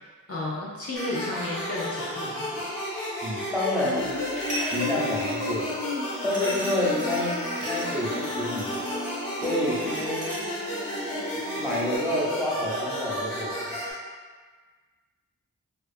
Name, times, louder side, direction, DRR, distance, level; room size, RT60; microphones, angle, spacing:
voice 1, 0.3-2.7, left 2 dB, 45° left, -6 dB, 0.6 m, -33 dB
sound 1, 1.0-13.9, equal, 85° left, 0.8 m, -33 dB
voice 2, 3.2-4.2 4.7-5.7 6.2-8.9 9.4-10.3 11.3-13.8, left 1 dB, ahead, -7 dB, 0.8 m, -28 dB
Human voice, 4.0-12.0, left 3 dB, 30° right, 0.9 m, -36 dB
sound 2, 4.2-5.4 6.3-10.7, right 1 dB, 60° right, 0.9 m, -37 dB
2.4 x 2.4 x 2.5 m, 1.5 s
cardioid pair, 40°, 33 cm